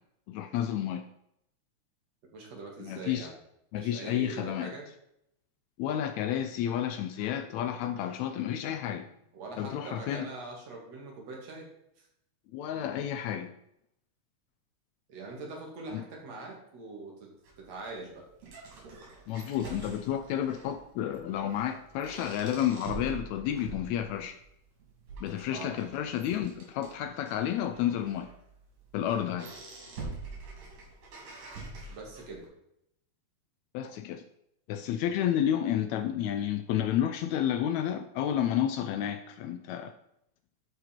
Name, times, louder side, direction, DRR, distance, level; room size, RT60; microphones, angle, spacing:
voice 1, 0.3-1.0 2.8-3.3 3.7-4.7 5.8-9.0 9.6-10.3 12.5-13.5 15.9-16.0 19.3-24.4 25.2-28.3 28.9-29.5 33.7-34.2 34.7-39.9, left 10 dB, 80° left, 9 dB, 1.7 m, -31 dB
voice 2, 2.3-3.4 3.7-4.9 9.3-11.7 12.0-12.1 15.1-18.3 25.5-25.8 31.9-32.5, right 3 dB, 60° right, -1 dB, 2.9 m, -43 dB
sound 1, 17.4-32.4, right 3 dB, 90° right, 4.3 m, -46 dB
11.5 x 5.0 x 4.3 m, 0.77 s
omnidirectional pair, 3.5 m